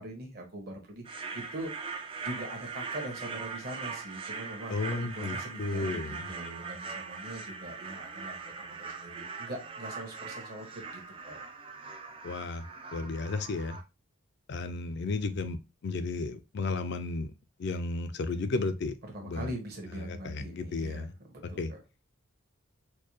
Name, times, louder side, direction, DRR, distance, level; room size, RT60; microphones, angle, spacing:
voice 1, 0.0-1.7 2.2-11.4 19.1-21.8, right 1 dB, 45° right, 1.1 m, -42 dB
sound 1, 1.0-13.8, right 4 dB, 25° right, 0.3 m, -41 dB
voice 2, 4.7-6.3 12.2-12.7 12.9-13.8 14.5-17.3 17.6-18.9 19.2-19.5 20.0-21.1 21.6-21.7, left 3 dB, 50° left, 0.4 m, -33 dB
4.3 x 2.2 x 3.1 m
head